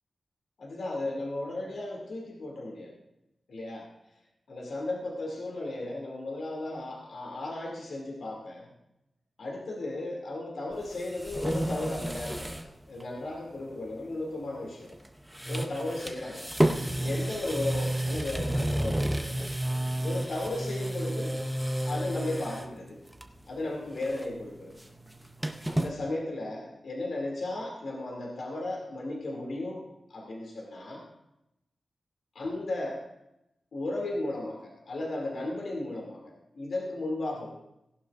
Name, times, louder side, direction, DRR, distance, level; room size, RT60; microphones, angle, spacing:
voice 1, 0.6-2.9 3.5-3.9 4.5-8.7 9.4-15.0 15.4-16.5 17.0-19.4 20.0-21.4 21.8-23.0 23.5-24.8 25.6-31.0 32.3-33.0 33.7-37.6, left 2 dB, 65° left, -1 dB, 2.6 m, -35 dB
sound 1, 10.7-12.7 13.0-13.1 14.8-15.1 15.3-22.7 23.1-23.5 23.8-25.9, right 1 dB, 5° right, 0.7 m, -31 dB
17.0 x 11.5 x 2.5 m, 0.86 s
wide cardioid pair, 175°, 0 cm